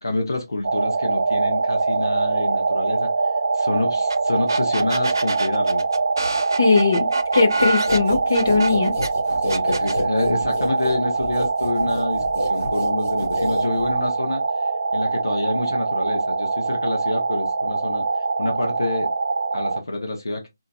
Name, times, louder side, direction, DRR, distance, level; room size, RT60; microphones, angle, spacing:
voice 1, 0.0-3.1 3.5-5.8 9.4-18.0 18.4-19.1 19.5-20.5, left 2 dB, 80° left, 1.1 m, -27 dB
sound 1, 0.6-19.8, right 3 dB, 45° right, 0.5 m, -23 dB
sound 2, 4.1-4.2 4.5-9.1 9.5-10.0, right 2 dB, 80° right, 0.7 m, -28 dB
voice 2, 6.6-7.1 7.3-8.9, left 4 dB, 55° left, 1.6 m, -19 dB
sound 3, 7.6-14.1, left 1 dB, 25° left, 1.7 m, -30 dB
3.9 x 2.9 x 2.3 m
figure-of-eight pair, 175°, 2 cm